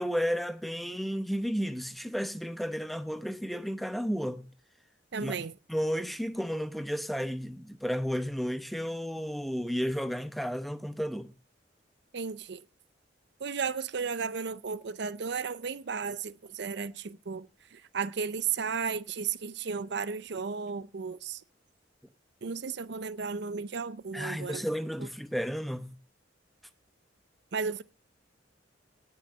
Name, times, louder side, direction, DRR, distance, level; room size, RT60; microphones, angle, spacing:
voice 1, 0.0-4.5 5.2-5.3 5.7-11.3 24.1-25.9, equal, ahead, 0.8 m, -32 dB
voice 2, 5.1-5.5 12.1-12.6 13.4-21.4 22.4-24.7 25.0-25.1 27.5-27.8, right 5 dB, 65° right, 0.6 m, -34 dB
18.0 x 6.4 x 5.5 m
head